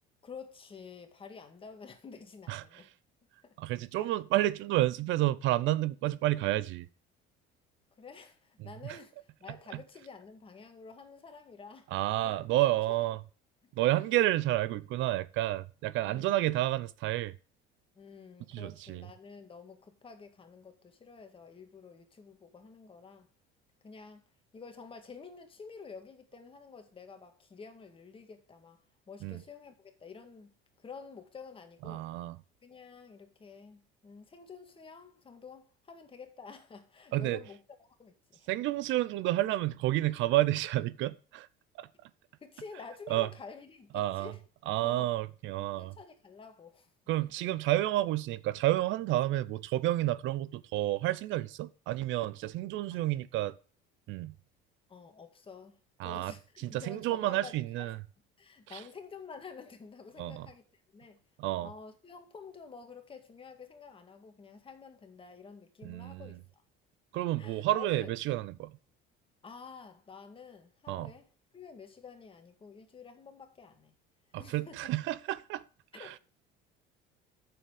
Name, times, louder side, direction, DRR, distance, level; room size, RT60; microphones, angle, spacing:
voice 1, 0.2-2.9 3.4-3.6 3.9-4.1 8.0-11.9 12.2-12.4 12.9-13.0 14.1-14.3 16.0-16.5 18.0-23.3 23.8-24.2 24.5-28.8 29.1-30.5 30.8-32.1 32.6-38.5 41.9-42.0 42.4-44.4 44.8-45.1 45.6-46.9 52.9-53.1 54.9-57.9 58.4-61.2 61.6-66.6 67.4-68.1 69.4-71.3 71.5-74.0 74.4-74.9 75.9-76.2, left 5 dB, 25° left, 1.9 m, -50 dB
voice 2, 2.5-2.8 3.6-6.9 8.9-9.0 11.9-13.2 13.8-17.3 18.5-19.0 29.2-29.4 31.9-32.3 37.1-37.4 38.5-41.5 41.8-41.9 43.1-43.3 43.9-44.3 44.7-45.9 47.1-53.6 54.1-54.3 56.0-56.3 56.6-57.9 58.7-58.8 60.2-60.5 61.4-61.7 65.8-66.3 67.1-68.7 70.9-71.1 74.3-75.6 76.0-76.1, right 15 dB, 65° right, 0.6 m, -30 dB
9.1 x 7.1 x 4.8 m
cardioid pair, 130°, 21 cm